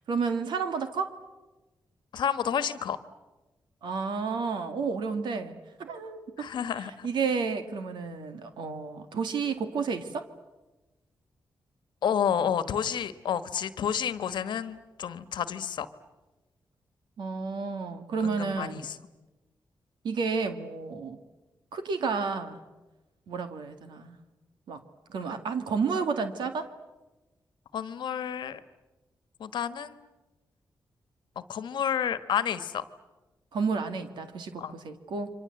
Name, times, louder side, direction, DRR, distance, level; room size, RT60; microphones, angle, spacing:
voice 1, 0.1-1.1 3.8-5.5 5.8-6.5 6.8-10.2 17.2-18.9 20.0-21.2 21.7-22.6 23.3-24.2 24.7-24.8 25.1-26.7 33.5-35.3, right 5 dB, 85° right, 7 dB, 2.1 m, -31 dB
voice 2, 2.1-3.0 6.4-7.1 12.0-15.9 18.2-19.0 27.7-28.6 29.4-30.1 31.3-32.8 34.6-34.7, left 8 dB, 90° left, 13 dB, 1.3 m, -30 dB
29.5 x 25.0 x 7.8 m, 1.1 s
cardioid pair, 80°, 8 cm